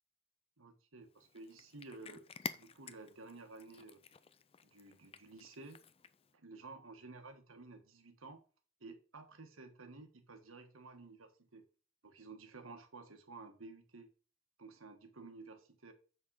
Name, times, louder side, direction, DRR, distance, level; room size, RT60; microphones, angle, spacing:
voice 1, 0.6-4.0 4.7-5.8 6.3-8.4 8.8-11.7 12.0-14.1 14.6-15.9, right 3 dB, 75° right, 1.6 m, -53 dB
Cat, 1.1-6.3, left 6 dB, 25° left, 0.4 m, -50 dB
7.3 x 6.4 x 4.8 m
head